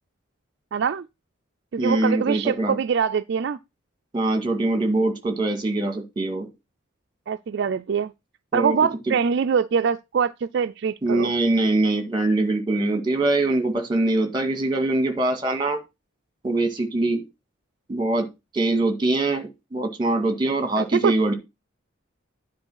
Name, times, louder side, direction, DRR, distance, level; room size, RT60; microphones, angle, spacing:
voice 1, 0.7-1.0 1.7-3.6 7.3-8.1 8.5-11.3 20.8-21.1, right 6 dB, 60° right, 0.4 m, -23 dB
voice 2, 1.8-2.8 4.1-6.5 8.5-8.8 9.1-9.2 11.0-15.8 16.4-17.2 17.9-18.3 18.5-21.3, right 2 dB, 25° right, 1.9 m, -23 dB
9.6 x 4.5 x 5.6 m
head